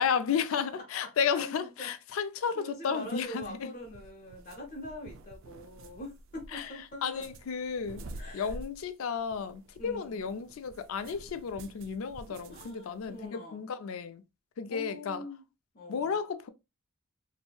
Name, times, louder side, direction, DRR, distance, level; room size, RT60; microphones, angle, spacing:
voice 1, 0.0-3.7 6.5-6.7 7.0-8.0 8.3-14.2 14.6-15.2 15.9-16.5, left 6 dB, 70° left, 0.4 m, -33 dB
voice 2, 1.0-2.2 2.5-7.2 8.2-8.5 9.8-10.4 12.5-13.7 14.7-15.4 15.7-16.2, left 1 dB, 40° left, 0.7 m, -44 dB
sound 1, 3.0-13.3, right 2 dB, 60° right, 0.3 m, -49 dB
2.7 x 2.6 x 2.2 m
head